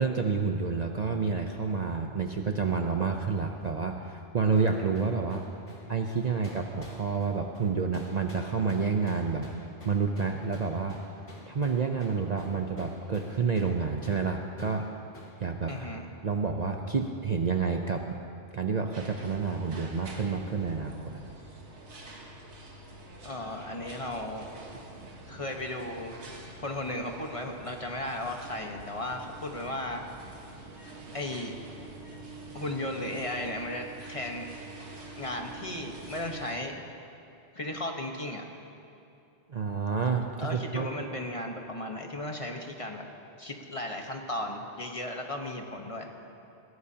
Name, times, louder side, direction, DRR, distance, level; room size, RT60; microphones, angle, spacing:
voice 1, 0.0-5.4 5.9-9.5 9.8-11.0 11.5-14.9 15.4-15.9 16.2-18.0 18.5-21.2 39.5-40.9, right 5 dB, 45° right, 3 dB, 0.7 m, -29 dB
sound 1, 4.5-13.8 14.0-14.2 14.6-14.8 15.1-15.3 15.7-15.9, left 1 dB, 80° left, 3.0 m, -50 dB
voice 2, 15.7-16.1 23.2-24.5 25.2-26.1 26.6-30.0 31.1-31.5 32.5-34.5 35.2-36.7 37.5-38.4 40.4-43.1 43.4-46.1, left 1 dB, 30° left, 2 dB, 1.2 m, -35 dB
sound 2, 18.9-36.6, right 2 dB, 90° right, 1.8 m, -46 dB
22.0 x 17.5 x 2.8 m, 2.6 s
omnidirectional pair, 1.2 m